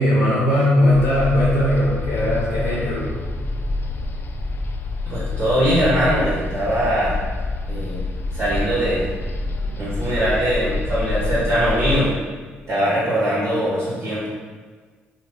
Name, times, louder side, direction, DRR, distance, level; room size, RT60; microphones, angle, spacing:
voice 1, 0.0-3.1, left 1 dB, 75° left, -6 dB, 0.8 m, -18 dB
sound 1, 0.9-12.1, left 3 dB, 40° left, 0.3 m, -27 dB
voice 2, 5.1-7.2 7.7-8.0 8.3-9.0 9.8-12.1 12.7-14.3, equal, 55° right, -8 dB, 1.1 m, -21 dB
2.6 x 2.6 x 3.5 m, 1.5 s
hypercardioid pair, 55°, 6 cm